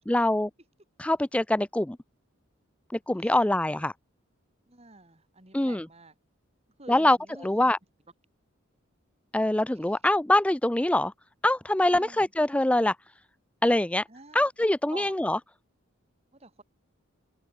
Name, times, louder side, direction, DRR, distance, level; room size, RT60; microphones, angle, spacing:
voice 1, 0.1-0.5 1.0-2.0 3.1-3.9 5.5-5.8 6.9-7.2 7.4-7.8 9.3-11.1 11.4-13.0 13.6-14.0 14.3-15.4, left 1 dB, 5° left, 0.4 m, -24 dB
voice 2, 3.2-3.9 4.7-6.1 6.8-7.7 9.8-10.0 11.9-12.3 14.1-14.4 14.9-15.1 16.3-16.6, right 2 dB, 30° right, 4.1 m, -49 dB
head